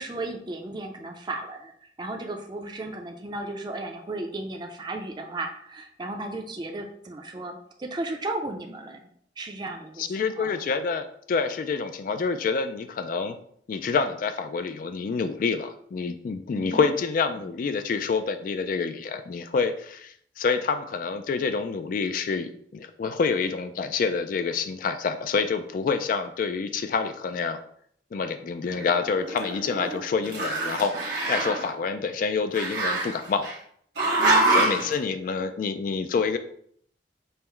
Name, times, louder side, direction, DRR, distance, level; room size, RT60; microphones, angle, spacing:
voice 1, 0.0-9.0 9.4-10.6 16.5-17.0 34.2-34.8, right 2 dB, 25° right, 3 dB, 0.5 m, -35 dB
voice 2, 10.0-13.4 13.7-27.6 28.1-33.5 34.5-36.4, left 5 dB, 50° left, 9 dB, 0.3 m, -27 dB
Growling, 28.7-30.0 30.2-31.7 32.5-33.5 34.0-34.9, right 2 dB, 75° right, 1.3 m, -25 dB
5.5 x 2.1 x 4.4 m, 0.65 s
head